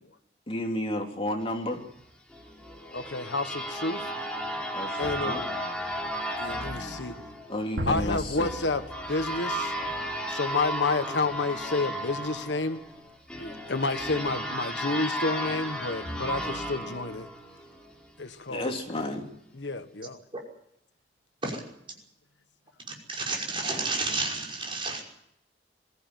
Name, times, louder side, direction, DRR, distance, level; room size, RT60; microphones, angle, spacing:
voice 1, 0.5-1.8 4.7-5.4 7.5-8.5 18.5-19.2, left 1 dB, 30° left, 3.3 m, -32 dB
sound 1, 2.3-18.0, equal, 5° left, 4.2 m, -34 dB
voice 2, 2.9-4.1 5.0-5.4 6.4-7.1 7.9-8.8 9.1-9.7 10.3-12.8 13.4-17.3 18.2-18.7 19.6-20.2, left 3 dB, 75° left, 1.4 m, -30 dB
sound 2, 7.8-10.7, equal, 70° right, 5.3 m, -37 dB
voice 3, 23.2-25.0, right 3 dB, 30° right, 5.7 m, -30 dB
22.5 x 15.5 x 9.2 m
head